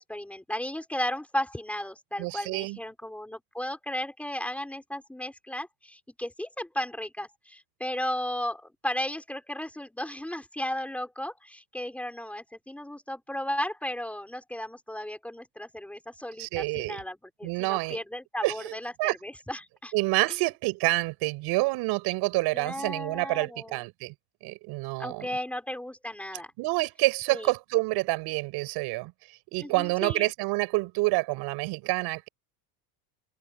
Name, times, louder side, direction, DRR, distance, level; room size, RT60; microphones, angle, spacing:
voice 1, 0.0-19.9 22.5-23.8 25.0-26.5 27.3-27.5 29.6-30.3, left 1 dB, 5° left, 5.9 m, -35 dB
voice 2, 2.2-2.8 16.4-17.0 17.4-18.0 18.4-19.2 19.9-24.1 24.4-25.3 26.6-29.1 29.5-32.3, right 23 dB, 55° right, 6.6 m, -28 dB
cardioid pair, 175°, 48 cm